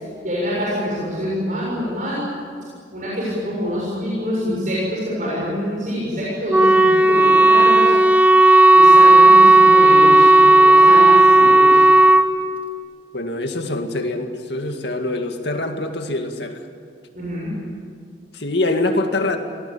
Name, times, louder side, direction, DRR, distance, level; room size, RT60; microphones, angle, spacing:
voice 1, 0.2-2.3 2.9-8.0 8.7-11.8 17.1-17.5, equal, 45° right, -6 dB, 6.8 m, -25 dB
Wind instrument woodwind instrument, 6.5-12.3, right 2 dB, 10° right, 0.9 m, -11 dB
voice 2, 13.1-16.7 18.3-19.4, left 2 dB, 65° left, 5 dB, 2.2 m, -24 dB
25.5 x 19.0 x 8.7 m, 2.2 s
head